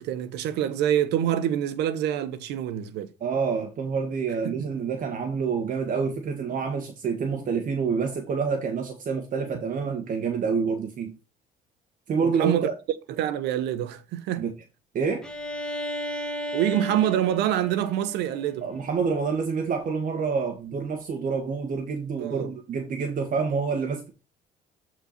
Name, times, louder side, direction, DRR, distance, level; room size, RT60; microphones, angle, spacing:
voice 1, 0.0-3.1 4.4-4.7 12.2-12.7 13.1-14.4 16.5-18.6 22.2-22.5, right 11 dB, 85° right, 1.2 m, -26 dB
voice 2, 3.2-11.1 12.1-12.7 14.4-14.5 14.9-15.3 18.6-24.1, right 5 dB, 50° right, 1.6 m, -27 dB
Bowed string instrument, 15.2-19.0, equal, 5° left, 1.8 m, -35 dB
8.4 x 4.5 x 4.3 m
cardioid pair, 110°, 17 cm